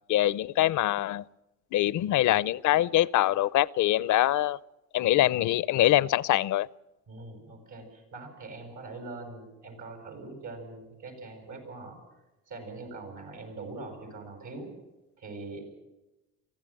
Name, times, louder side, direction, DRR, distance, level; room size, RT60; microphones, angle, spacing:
voice 1, 0.1-1.2 1.7-4.6 4.9-6.7, left 14 dB, 75° left, 0.6 m, -24 dB
voice 2, 7.1-12.0 12.5-14.7 15.2-15.6, right 3 dB, 75° right, 7.9 m, -42 dB
24.0 x 16.0 x 7.7 m
cardioid pair, 90°, 30 cm